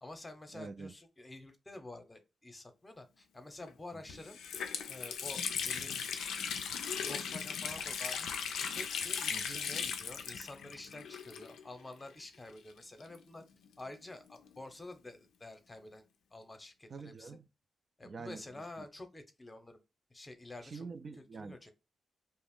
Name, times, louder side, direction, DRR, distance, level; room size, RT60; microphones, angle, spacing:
voice 1, 0.0-4.4 4.9-6.1 7.1-8.3 8.8-13.4 13.8-16.0 16.3-17.3 18.0-19.8 20.1-20.9 21.4-21.7, left 2 dB, 20° left, 0.7 m, -49 dB
voice 2, 0.5-0.9 3.9-4.0 9.3-9.6 16.9-17.4 18.0-18.4 18.8-18.9 20.6-21.6, right 4 dB, 50° right, 0.3 m, -46 dB
Water tap faucet, 3.6-3.7 4.1-11.8 12.1-12.2 13.0-14.6, left 7 dB, 90° left, 0.4 m, -38 dB
2.4 x 2.0 x 3.6 m
cardioid pair, 80°, 0 cm